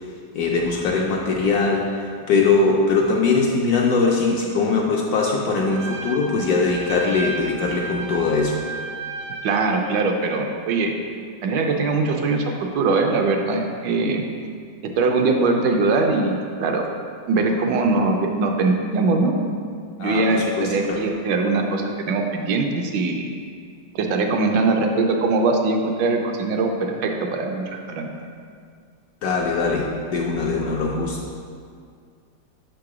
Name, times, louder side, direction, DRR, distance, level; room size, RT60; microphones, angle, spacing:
voice 1, 0.3-1.9 2.3-8.5 20.0-21.0 29.2-31.3, left 4 dB, 70° left, -1 dB, 0.9 m, -21 dB
Trumpet, 5.7-10.0, right 3 dB, 60° right, 0.8 m, -33 dB
voice 2, 9.4-10.9 11.4-14.2 14.8-16.9 17.3-19.3 20.0-23.3 23.9-28.1, right 3 dB, 75° right, 2 dB, 1.2 m, -21 dB
6.2 x 3.8 x 4.7 m, 2.2 s
omnidirectional pair, 2.0 m